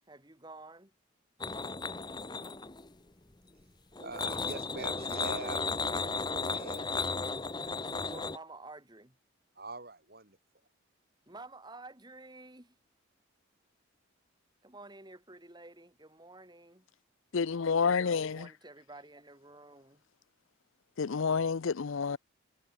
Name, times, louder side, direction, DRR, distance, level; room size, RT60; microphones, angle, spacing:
voice 1, 0.1-0.9 7.9-9.2 11.3-12.8 14.6-16.9 17.8-20.0, right 2 dB, 20° right, 2.1 m, -51 dB
sound 1, 1.4-2.9 4.0-8.4, left 4 dB, 20° left, 0.9 m, -35 dB
voice 2, 4.0-7.0 7.8-8.1 9.6-10.4, right 2 dB, 45° right, 4.1 m, -44 dB
voice 3, 17.3-18.5 21.0-22.2, left 5 dB, 70° left, 0.5 m, -29 dB
head